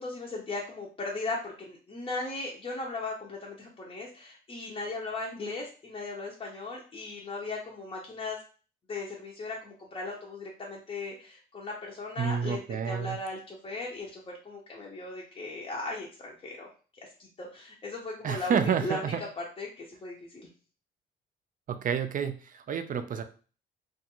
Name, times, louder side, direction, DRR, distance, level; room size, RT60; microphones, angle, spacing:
voice 1, 0.0-8.4 8.9-16.7 17.0-17.1 17.4-20.5, left 2 dB, 30° left, -3 dB, 0.6 m, -37 dB
voice 2, 12.2-13.2 18.2-19.2 21.7-23.2, right 7 dB, 45° right, 8 dB, 0.4 m, -29 dB
2.4 x 2.3 x 2.9 m, 0.38 s
cardioid pair, 90°, 20 cm